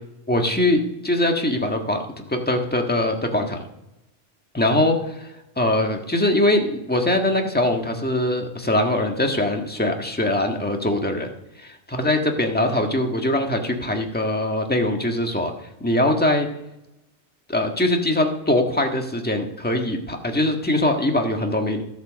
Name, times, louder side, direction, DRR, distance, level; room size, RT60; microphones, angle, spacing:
voice 1, 0.3-3.6 4.5-11.3 11.9-16.5 17.5-21.8, left 1 dB, 10° left, 3 dB, 1.5 m, -22 dB
14.5 x 8.1 x 6.3 m, 0.89 s
omnidirectional pair, 1.2 m